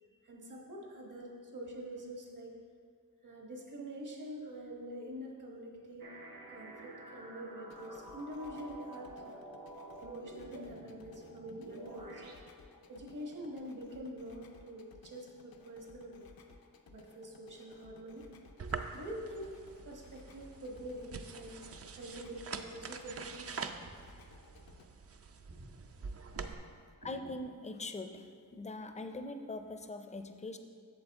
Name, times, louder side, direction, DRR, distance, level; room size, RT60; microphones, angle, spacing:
voice 1, 0.2-2.6 3.2-6.1 6.5-9.4 10.0-12.2 12.9-16.3 16.9-18.2 18.9-21.6 21.9-23.6 25.5-25.7 26.3-26.5 27.0-27.3, equal, 60° right, 0 dB, 1.3 m, -46 dB
sound 1, 6.0-12.3, right 2 dB, 80° right, 1.0 m, -50 dB
sound 2, 7.6-24.9, left 4 dB, 85° left, 0.6 m, -59 dB
sound 3, 18.6-26.5, right 5 dB, 45° right, 0.4 m, -45 dB
voice 2, 27.0-30.6, left 2 dB, 20° left, 7 dB, 0.4 m, -42 dB
7.9 x 7.1 x 3.5 m, 2.2 s
wide cardioid pair, 100°, 35 cm